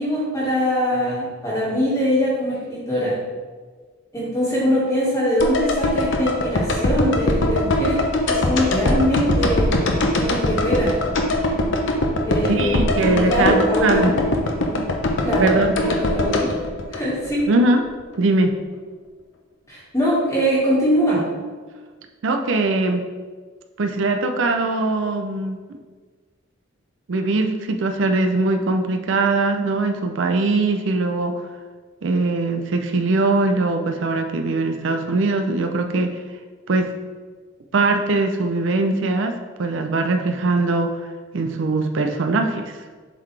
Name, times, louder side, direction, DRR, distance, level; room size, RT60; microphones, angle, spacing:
voice 1, 0.0-3.1 4.1-9.7 10.2-10.9 12.2-14.2 14.6-14.8 15.2-15.5 15.7-16.6 16.9-17.4 19.7-21.2, equal, 15° left, -8 dB, 1.6 m, -22 dB
sound 1, 5.4-17.6 17.8-17.9, left 1 dB, 65° left, 0.7 m, -22 dB
voice 2, 12.5-14.1 15.4-15.7 17.5-17.8 18.2-18.6 22.2-23.0 23.8-25.6 27.1-31.3 32.0-36.2 36.7-36.9 37.7-40.9 41.3-42.8, right 3 dB, 70° right, 5 dB, 0.5 m, -21 dB
7.5 x 4.0 x 3.2 m, 1.5 s
head